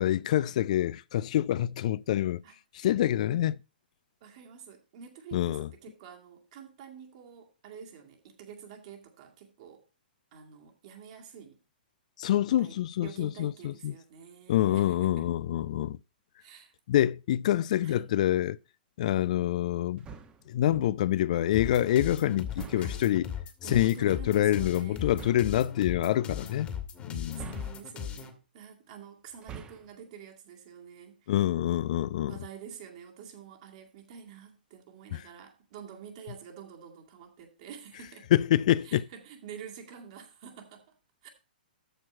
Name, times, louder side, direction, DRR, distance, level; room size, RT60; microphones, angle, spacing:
voice 1, 0.0-2.4 2.7-3.6 5.3-5.7 12.2-13.9 14.5-16.0 16.9-18.6 19.0-20.0 20.5-23.3 23.7-26.7 27.0-27.6 31.3-32.4 35.1-35.2 38.3-39.1, left 12 dB, 50° left, 0.3 m, -26 dB
voice 2, 4.2-9.9 10.3-11.6 12.6-15.3 16.4-16.7 17.8-18.1 22.8-23.1 23.6-25.5 27.3-31.3 32.3-38.3 38.8-40.9 41.2-41.3, right 8 dB, 45° right, 2.2 m, -48 dB
sound 1, 20.0-20.5 22.5-23.1 25.1-25.6 27.3-28.1 29.3-30.0, right 8 dB, 20° right, 1.1 m, -45 dB
sound 2, 21.5-28.3, left 8 dB, 20° left, 1.6 m, -38 dB
13.5 x 4.5 x 4.3 m
figure-of-eight pair, 115°, 5 cm